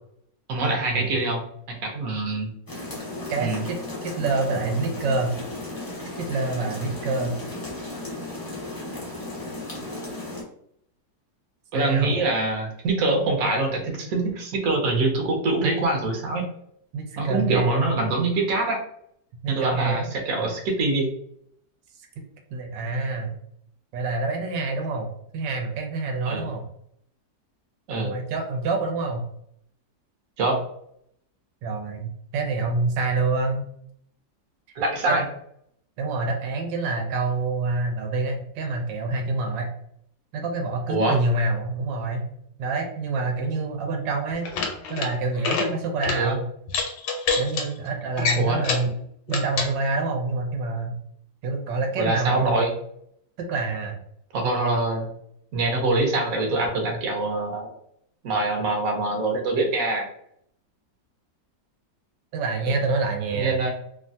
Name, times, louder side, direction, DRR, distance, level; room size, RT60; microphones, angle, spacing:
voice 1, 0.5-2.5 3.4-3.6 11.7-16.5 17.2-18.8 19.5-21.1 26.3-26.4 27.9-28.1 30.4-30.6 34.8-35.2 40.9-41.2 46.1-46.4 48.4-48.6 52.0-52.7 54.3-55.1 55.5-57.7 58.2-60.1 62.7-62.8 63.3-63.7, right 2 dB, 65° right, 2 dB, 1.0 m, -24 dB
sound 1, 2.7-10.4, left 2 dB, 35° left, 0.3 m, -35 dB
voice 2, 3.3-5.3 6.2-7.3 11.7-12.2 16.9-17.9 19.4-20.1 22.5-23.4 23.9-25.1 25.3-26.6 28.0-29.2 31.6-33.6 35.1-35.2 36.0-39.7 40.3-42.3 42.6-44.5 44.9-46.4 47.4-48.9 49.3-50.9 51.4-52.6 53.4-54.0 62.3-63.5, right 3 dB, 85° right, 3 dB, 1.3 m, -27 dB
sound 2, 44.3-45.1 45.4-45.7 46.0-46.2 46.7-47.6 48.2-48.9 49.3-49.7, left 5 dB, 85° left, 1.3 m, -26 dB
3.0 x 2.2 x 2.6 m, 0.70 s
omnidirectional pair, 1.9 m